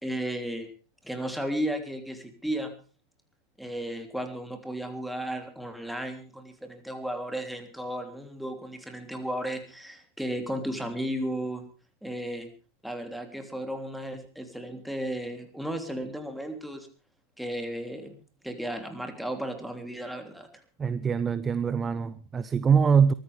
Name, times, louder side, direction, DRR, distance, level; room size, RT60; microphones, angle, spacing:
voice 1, 0.0-0.7 1.0-2.7 3.6-11.6 12.0-12.5 12.8-16.9 17.4-20.6, right 1 dB, ahead, 3.3 m, -34 dB
voice 2, 20.8-23.1, right 6 dB, 20° right, 0.7 m, -23 dB
23.0 x 15.5 x 3.5 m
figure-of-eight pair, 90°, 0 cm